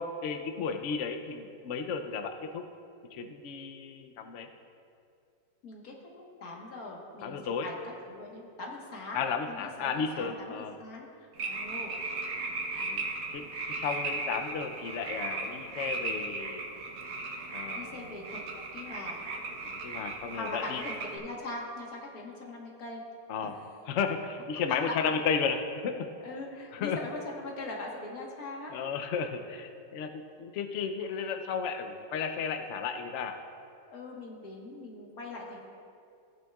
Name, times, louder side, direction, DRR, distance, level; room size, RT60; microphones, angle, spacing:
voice 1, 0.0-2.6 3.1-4.5 7.2-7.7 9.1-10.8 12.8-13.0 13.3-16.6 17.5-18.1 19.6-20.8 23.3-23.6 23.9-25.6 25.8-26.1 26.7-27.0 28.7-33.4, left 6 dB, 75° left, 6 dB, 0.6 m, -33 dB
voice 2, 5.6-7.8 8.1-11.1 11.4-12.0 17.7-18.4 18.7-19.2 20.3-23.0 23.4-23.5 26.2-28.8 33.9-35.7, left 2 dB, 60° left, -1 dB, 1.7 m, -41 dB
sound 1, 11.3-21.2, right 3 dB, 70° right, 1.6 m, -37 dB
15.0 x 8.9 x 2.3 m, 2.4 s
omnidirectional pair, 1.9 m